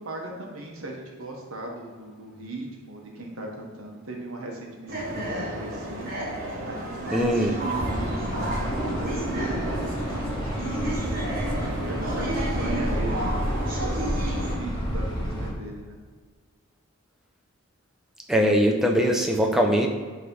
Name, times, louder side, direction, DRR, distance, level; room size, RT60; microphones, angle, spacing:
voice 1, 0.0-13.3 13.7-16.0, right 2 dB, 70° right, -1 dB, 1.3 m, -38 dB
sound 1, 4.9-14.5, right 1 dB, 40° right, 1.5 m, -32 dB
voice 2, 7.1-7.5 18.3-19.9, equal, ahead, 1 dB, 0.6 m, -21 dB
sound 2, 7.7-15.5, equal, 20° left, 1.7 m, -29 dB
9.6 x 3.3 x 5.5 m, 1.5 s
head